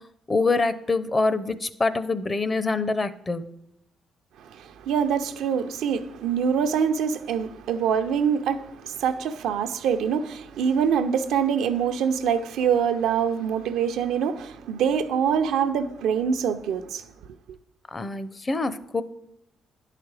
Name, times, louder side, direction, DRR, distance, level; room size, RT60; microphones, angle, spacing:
voice 1, 0.3-3.5 17.9-19.0, left 3 dB, 30° left, 0.5 m, -25 dB
voice 2, 4.4-17.1, right 7 dB, 85° right, 0.6 m, -25 dB
10.5 x 4.9 x 4.8 m
cardioid pair, 90°, 0 cm